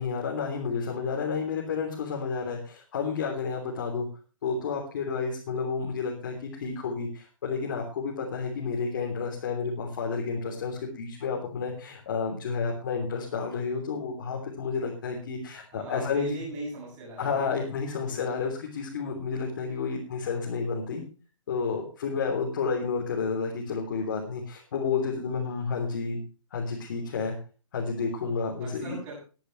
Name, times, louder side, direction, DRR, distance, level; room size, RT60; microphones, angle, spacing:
voice 1, 0.0-4.1 4.4-16.3 17.2-21.0 21.5-26.2 26.5-27.3 27.7-28.9, left 5 dB, 40° left, -2 dB, 3.5 m, -31 dB
voice 2, 15.7-17.6 18.0-18.2 28.6-29.2, right 1 dB, 15° right, -3 dB, 7.9 m, -39 dB
20.5 x 10.0 x 3.3 m, 0.35 s
hypercardioid pair, 175°, 17 cm